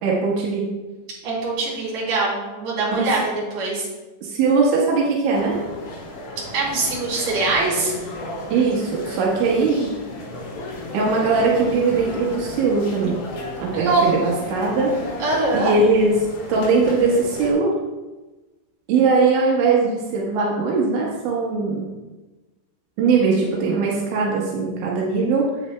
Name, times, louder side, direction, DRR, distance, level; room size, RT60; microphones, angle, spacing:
voice 1, 0.0-0.7 2.9-3.1 4.2-5.6 8.5-9.9 10.9-13.2 13.6-14.9 15.5-16.1 16.5-17.8 18.9-21.9 23.0-25.5, right 4 dB, 85° right, -3 dB, 3.8 m, -20 dB
voice 2, 1.2-3.9 6.5-7.9 13.7-14.1 15.2-15.7, right 3 dB, 45° right, -6 dB, 4.2 m, -22 dB
sound 1, 5.3-17.5, left 1 dB, 90° left, 5.0 m, -34 dB
11.5 x 8.7 x 2.3 m, 1.2 s
omnidirectional pair, 5.3 m